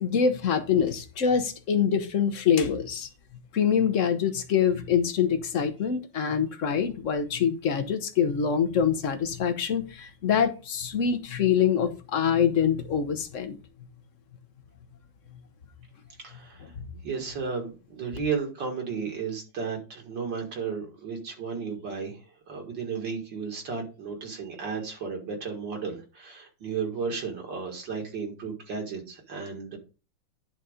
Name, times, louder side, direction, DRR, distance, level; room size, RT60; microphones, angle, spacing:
voice 1, 0.0-3.1 3.5-13.6 16.8-16.9, left 7 dB, 50° left, 1.1 m, -25 dB
voice 2, 16.2-16.7 17.0-29.8, right 5 dB, 65° right, 2.5 m, -34 dB
10.0 x 4.1 x 5.0 m
omnidirectional pair, 2.1 m